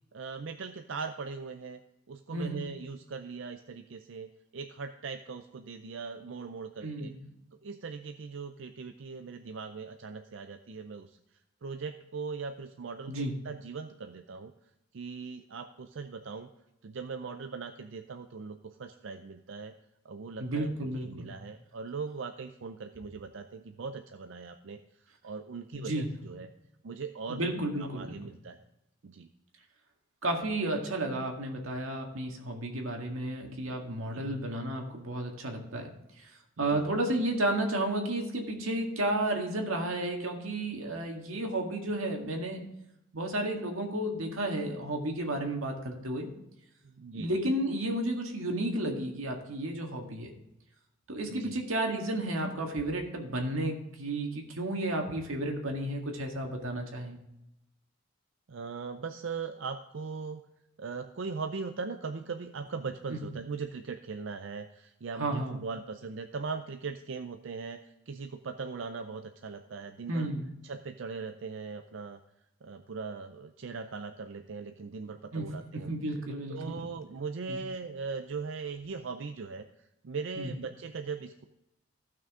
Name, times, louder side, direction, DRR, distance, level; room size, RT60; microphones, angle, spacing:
voice 1, 0.1-1.8 2.1-7.1 7.6-11.2 11.6-14.5 14.9-16.5 16.8-19.7 20.0-24.8 25.2-26.5 26.8-27.4 27.8-28.6 29.0-29.3 34.1-34.2 36.6-36.8 46.8-47.5 51.3-51.6 58.5-60.4 60.8-67.8 68.1-70.3 70.6-72.2 72.6-75.9 76.5-81.4, right 5 dB, 65° right, 7 dB, 0.5 m, -40 dB
voice 2, 2.3-2.7 6.8-7.2 13.1-13.3 20.4-21.3 25.7-26.1 27.3-28.1 30.2-35.9 36.2-36.3 36.6-42.6 43.1-46.3 47.1-50.3 51.1-57.2 63.1-63.3 65.2-65.6 70.1-70.5 75.3-76.8 77.5-77.6 80.4-80.5, right 1 dB, 90° right, 2 dB, 1.9 m, -32 dB
15.0 x 6.1 x 3.7 m, 0.88 s
head